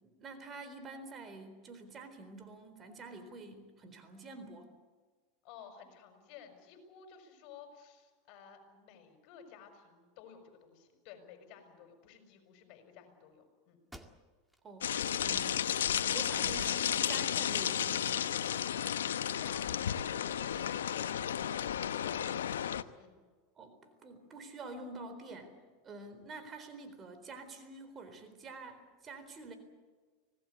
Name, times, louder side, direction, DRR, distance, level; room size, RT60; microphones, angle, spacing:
voice 1, 0.0-4.7 14.6-14.9 15.2-15.7 16.0-18.3 23.6-25.6 25.8-29.6, right 3 dB, 30° right, 9 dB, 4.0 m, -47 dB
voice 2, 5.4-13.8 19.3-20.2 23.0-23.2, left 7 dB, 55° left, 6 dB, 6.0 m, -54 dB
sound 1, 13.3-13.4 13.8-14.7 15.2-15.3 15.8-16.7, right 1 dB, 5° right, 2.1 m, -56 dB
sound 2, 14.8-22.8, left 9 dB, 90° left, 0.9 m, -33 dB
25.5 x 18.0 x 8.3 m, 1.5 s
hypercardioid pair, 105°, 0 cm